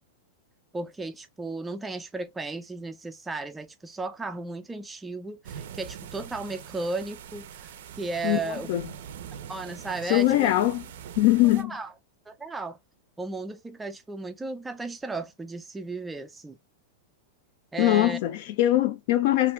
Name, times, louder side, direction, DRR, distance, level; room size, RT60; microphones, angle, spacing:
voice 1, 0.7-7.7 8.0-8.7 9.5-10.5 11.5-11.9 12.3-12.8 13.2-16.6 17.7-18.2, right 3 dB, 10° right, 0.3 m, -35 dB
sound 1, 5.4-11.6, right 8 dB, 70° right, 0.4 m, -43 dB
voice 2, 10.1-10.8 11.2-11.8 17.8-19.5, left 14 dB, 55° left, 0.4 m, -22 dB
2.5 x 2.3 x 3.0 m
supercardioid pair, 150°, 0 cm